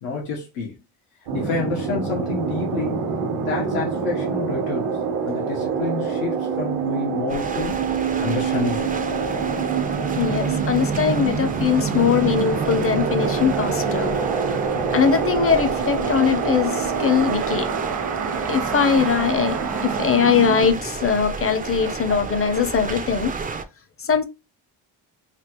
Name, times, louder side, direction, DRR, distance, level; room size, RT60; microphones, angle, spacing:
voice 1, 0.0-0.7 1.3-3.1 3.4-4.9 5.3-7.8 8.2-8.9, left 4 dB, 90° left, 1.2 m, -28 dB
sound 1, 1.3-20.7, right 6 dB, 75° right, 1.1 m, -25 dB
sound 2, 7.3-23.6, right 4 dB, 20° right, 0.4 m, -32 dB
voice 2, 10.2-14.1 14.9-17.7 18.5-23.3 24.0-24.2, left 7 dB, 30° left, 0.6 m, -21 dB
3.3 x 2.4 x 2.9 m
cardioid pair, 75°, 49 cm